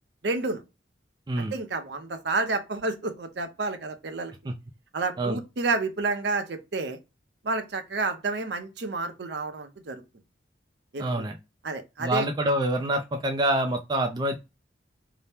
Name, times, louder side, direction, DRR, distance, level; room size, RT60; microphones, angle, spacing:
voice 1, 0.2-0.6 1.4-4.3 4.9-7.0 7.4-10.0 10.9-11.3 11.6-12.3, right 3 dB, 65° right, 0.6 m, -30 dB
voice 2, 11.0-11.4 12.0-14.4, right 1 dB, 25° right, 0.3 m, -26 dB
2.8 x 2.1 x 3.3 m
head